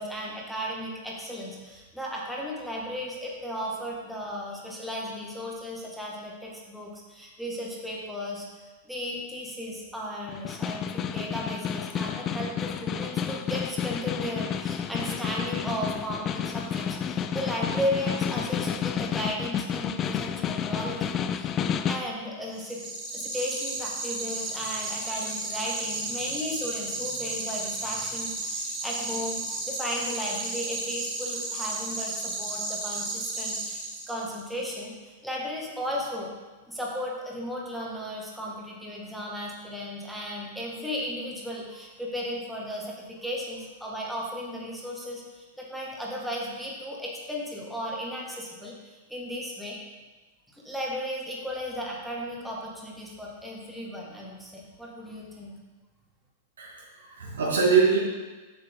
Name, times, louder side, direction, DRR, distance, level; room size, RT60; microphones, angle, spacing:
voice 1, 0.0-21.5 21.9-22.8 23.1-36.3 36.7-49.8 50.5-55.6, equal, ahead, -4 dB, 1.7 m, -35 dB
Snare drum, 10.3-22.1, left 8 dB, 30° left, 0.4 m, -30 dB
sound 1, 22.5-34.4, right 2 dB, 30° right, 2.3 m, -33 dB
voice 2, 56.6-58.0, right 5 dB, 80° right, -3 dB, 2.1 m, -23 dB
7.1 x 6.6 x 3.7 m, 1.3 s
hypercardioid pair, 100°, 0 cm